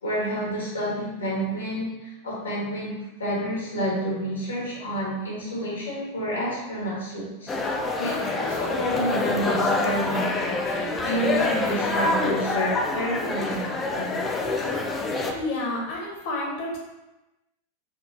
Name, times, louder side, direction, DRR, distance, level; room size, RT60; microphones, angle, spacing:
voice 1, 0.0-14.3, right 1 dB, 75° left, -6 dB, 1.4 m, -30 dB
sound 1, 7.5-15.3, left 3 dB, 20° left, 0.4 m, -26 dB
voice 2, 15.3-16.8, left 2 dB, 45° left, -2 dB, 1.0 m, -30 dB
4.4 x 2.6 x 2.6 m, 1.0 s
figure-of-eight pair, 90°, 0 cm